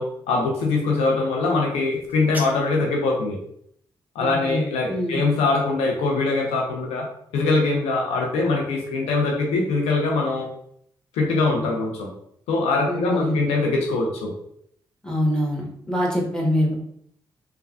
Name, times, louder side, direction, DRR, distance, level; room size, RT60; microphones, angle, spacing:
voice 1, 0.0-3.4 4.2-7.1 7.3-10.5 11.1-12.1 12.5-14.3, left 3 dB, 85° left, 0 dB, 0.5 m, -22 dB
sound 1, 1.9-2.9, right 1 dB, 15° right, 0.8 m, -38 dB
voice 2, 4.2-5.2 12.9-13.4 15.0-16.7, equal, 5° left, -3 dB, 1.3 m, -24 dB
3.2 x 2.2 x 2.4 m, 0.68 s
supercardioid pair, 40°, 10 cm